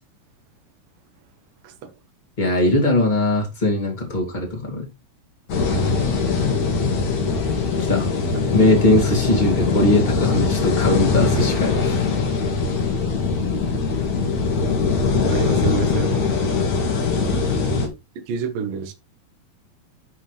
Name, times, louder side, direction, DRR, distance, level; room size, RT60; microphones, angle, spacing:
voice 1, 2.4-4.9 7.8-8.1 8.5-12.1 17.3-17.5, left 1 dB, 15° left, 2.0 m, -20 dB
sound 1, 5.5-17.9, left 4 dB, 50° left, 3.1 m, -21 dB
voice 2, 15.3-16.2 18.3-18.9, right 6 dB, 70° right, 2.7 m, -28 dB
11.5 x 4.4 x 3.3 m
omnidirectional pair, 4.4 m